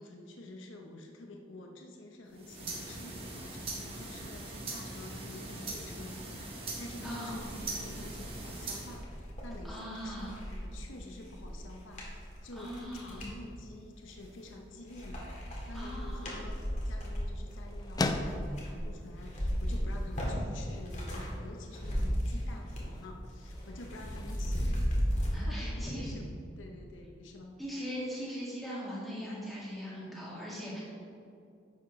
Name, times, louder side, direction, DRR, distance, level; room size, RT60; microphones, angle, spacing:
voice 1, 0.0-6.4 6.8-15.2 15.7-16.6 16.8-24.8 25.4-26.3 26.6-27.6, left 2 dB, 85° left, 2 dB, 0.8 m, -48 dB
sound 1, 2.3-9.0, right 2 dB, 30° right, 1.4 m, -41 dB
voice 2, 7.0-7.4 9.6-10.4 12.5-13.3 15.7-16.4 25.3-26.2 27.6-30.8, equal, ahead, -8 dB, 2.0 m, -40 dB
sound 2, 7.3-13.4 14.0-14.6 14.9-21.3 21.6-23.0 23.2-25.3, equal, 40° left, 1.7 m, -36 dB
sound 3, 15.9-25.7, left 2 dB, 20° left, 0.3 m, -42 dB
10.0 x 6.9 x 3.1 m, 2.5 s
head